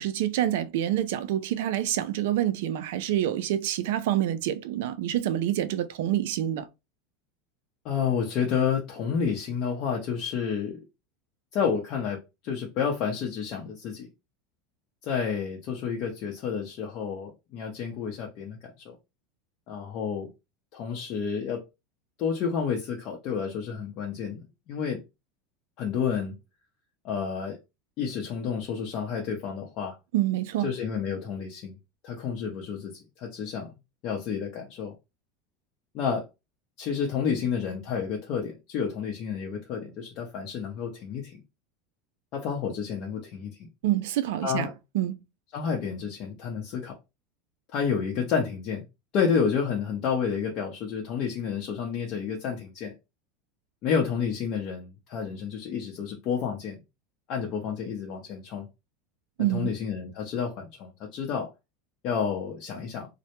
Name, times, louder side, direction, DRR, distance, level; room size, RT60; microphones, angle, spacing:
voice 1, 0.0-6.7 30.1-30.7 43.8-44.7 44.9-45.2 59.4-59.7, right 12 dB, 75° right, 0.3 m, -27 dB
voice 2, 7.8-10.8 11.5-14.1 15.0-19.0 19.7-20.3 20.7-21.6 22.2-25.0 25.8-26.3 27.0-27.6 28.0-30.0 30.6-31.7 32.0-33.7 34.0-34.9 35.9-36.3 36.8-41.4 42.3-43.7 44.4-44.7 45.5-46.9 47.7-48.8 49.1-52.9 53.8-56.8 57.3-58.7 59.4-61.5 62.0-63.1, left 6 dB, 55° left, 0.6 m, -30 dB
2.0 x 2.0 x 2.9 m
hypercardioid pair, 100°, 0 cm